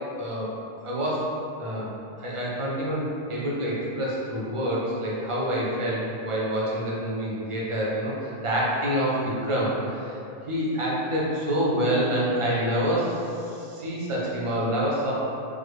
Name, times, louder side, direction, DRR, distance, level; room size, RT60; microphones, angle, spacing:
voice 1, 0.2-0.5 0.8-1.2 1.6-9.2 9.4-10.1 10.5-15.1, equal, 40° right, -5 dB, 0.5 m, -27 dB
3.2 x 2.1 x 3.3 m, 2.6 s
omnidirectional pair, 1.1 m